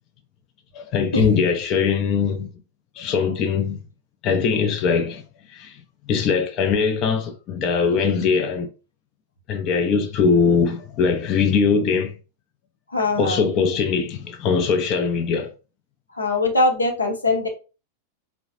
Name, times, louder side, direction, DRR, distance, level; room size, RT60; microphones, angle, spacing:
voice 1, 0.7-2.5 3.0-3.8 4.2-5.2 5.5-5.8 6.1-8.7 9.5-12.1 13.2-15.5, left 5 dB, 35° left, 0.5 m, -21 dB
voice 2, 12.9-13.5 16.2-17.5, left 2 dB, 80° left, 0.7 m, -21 dB
3.8 x 2.1 x 2.8 m
figure-of-eight pair, 90°, 0 cm